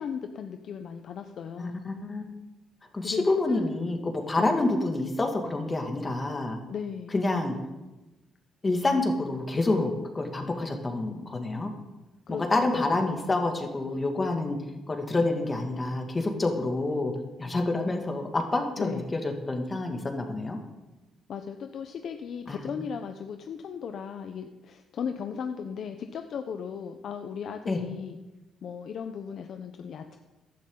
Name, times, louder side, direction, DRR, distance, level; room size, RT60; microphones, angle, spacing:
voice 1, 0.0-1.8 3.0-3.6 4.4-4.6 6.7-7.2 12.3-13.0 18.8-19.2 21.3-28.2 28.6-30.2, left 7 dB, 65° left, 6 dB, 0.8 m, -36 dB
voice 2, 1.6-2.3 2.9-6.6 7.1-7.6 8.6-11.7 12.3-14.6 14.9-17.1 17.4-20.6 22.5-22.7 27.7-27.8, left 2 dB, 25° left, 3 dB, 2.3 m, -28 dB
15.5 x 11.5 x 3.9 m, 1.0 s
cardioid pair, 90°, 0 cm